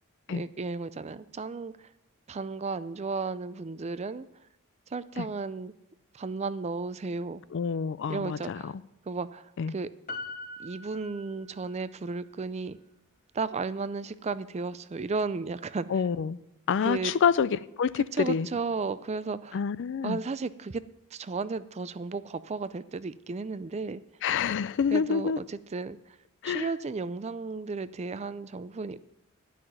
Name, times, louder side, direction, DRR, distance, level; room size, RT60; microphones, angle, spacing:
voice 1, 0.3-1.7 2.3-4.3 4.9-5.7 6.1-7.4 8.1-8.8 9.1-9.9 10.6-12.8 13.3-15.9 16.8-17.2 18.0-19.6 20.0-20.8 21.1-24.0 24.9-26.0 26.4-29.0, right 4 dB, 30° right, 0.4 m, -34 dB
voice 2, 7.5-8.7 9.6-9.7 15.9-16.4 16.7-18.5 19.5-20.2 24.2-25.4 26.4-26.7, left 6 dB, 55° left, 0.4 m, -27 dB
Piano, 10.1-11.9 12.2-12.3, left 2 dB, 40° left, 0.9 m, -41 dB
12.0 x 5.8 x 9.1 m
head